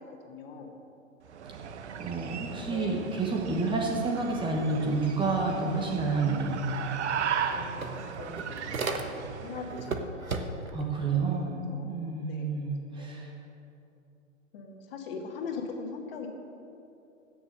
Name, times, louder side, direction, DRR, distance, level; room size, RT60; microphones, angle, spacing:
voice 1, 0.3-0.8 2.4-2.9 7.5-13.2 14.5-16.3, left 4 dB, 45° left, 2 dB, 1.9 m, -42 dB
sound 1, 1.2-9.9, right 7 dB, 55° right, 1.0 m, -37 dB
voice 2, 2.0-6.7 10.7-11.5 11.8-13.3, right 3 dB, 10° right, -1 dB, 1.1 m, -29 dB
sound 2, 6.8-6.9 7.2-9.4 9.8-10.8, right 3 dB, 85° right, 1.3 m, -35 dB
16.0 x 6.8 x 6.6 m, 2.8 s
figure-of-eight pair, 120°, 41 cm